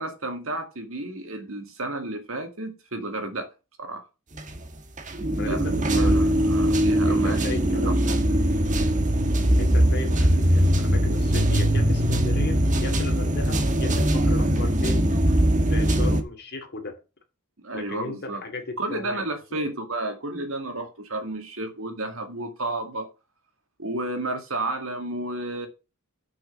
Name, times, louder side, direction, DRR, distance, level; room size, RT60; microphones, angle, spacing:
voice 1, 0.0-3.5 3.8-4.1 5.4-5.6 6.0-7.4 7.9-8.0 17.6-18.4 18.8-23.1 23.8-25.7, right 2 dB, 65° right, 2.1 m, -32 dB
sound 1, 4.4-4.7 5.0-16.2, right 1 dB, 35° right, 1.3 m, -21 dB
voice 2, 5.4-6.2 7.1-8.2 9.6-15.0 15.7-17.0 17.7-19.7, left 3 dB, 50° left, 2.3 m, -35 dB
6.7 x 6.2 x 7.2 m
head